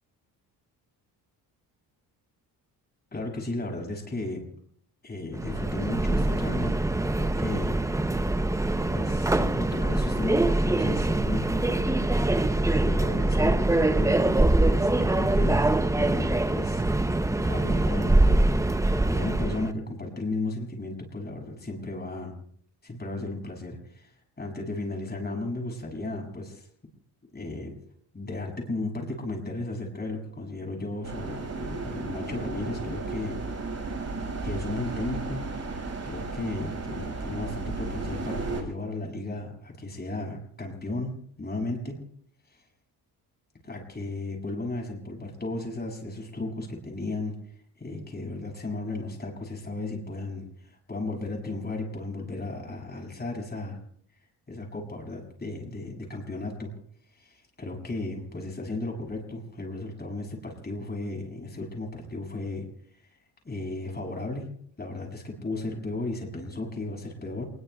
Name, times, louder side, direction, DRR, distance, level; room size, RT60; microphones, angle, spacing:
voice 1, 3.1-4.5 5.0-6.8 7.1-7.8 8.9-18.6 19.0-22.3 22.8-26.7 27.3-27.7 28.1-33.4 34.4-35.4 36.0-42.0 42.5-42.6 43.6-47.3 47.8-53.8 54.5-56.7 57.1-62.6 63.4-64.5 64.8-67.5, left 2 dB, 25° left, 1 dB, 6.6 m, -35 dB
Subway metro underground, 5.3-19.7, right 2 dB, 10° right, 0.6 m, -24 dB
sound 1, 31.0-38.6, right 3 dB, 40° right, 5.5 m, -34 dB
28.5 x 21.0 x 2.3 m, 0.63 s
cardioid pair, 95°, 40 cm